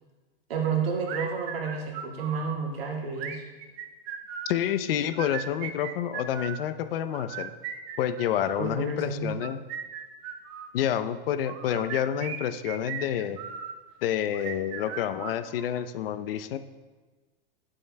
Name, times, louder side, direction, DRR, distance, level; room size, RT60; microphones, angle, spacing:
voice 1, 0.5-3.4 8.6-9.4, right 5 dB, 85° right, -1 dB, 2.0 m, -30 dB
sound 1, 1.1-2.6 3.2-4.6 5.1-6.6 7.1-8.7 9.3-10.7 11.4-13.8 14.3-15.8, right 8 dB, 45° right, 0.8 m, -38 dB
voice 2, 4.5-7.5 8.0-9.6 10.7-13.4 14.0-16.6, left 10 dB, 75° left, 11 dB, 0.7 m, -28 dB
18.0 x 7.7 x 2.2 m, 1.3 s
hypercardioid pair, 125°, 29 cm